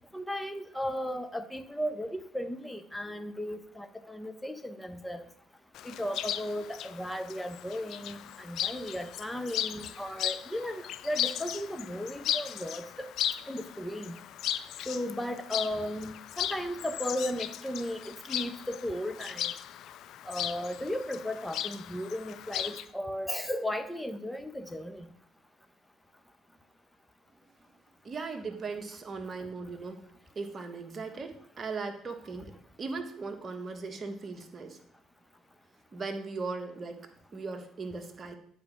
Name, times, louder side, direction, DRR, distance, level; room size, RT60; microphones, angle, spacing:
voice 1, 0.1-5.2 5.8-13.1 13.5-14.2 14.9-19.5 20.3-25.1, equal, 5° left, 8 dB, 1.1 m, -35 dB
Chirp tweet, 5.7-22.9, left 11 dB, 60° left, 0.4 m, -37 dB
voice 2, 28.0-30.1 30.3-34.8 35.9-38.4, right 4 dB, 35° right, 5 dB, 1.5 m, -38 dB
10.5 x 5.1 x 6.1 m, 0.66 s
figure-of-eight pair, 50°, 0 cm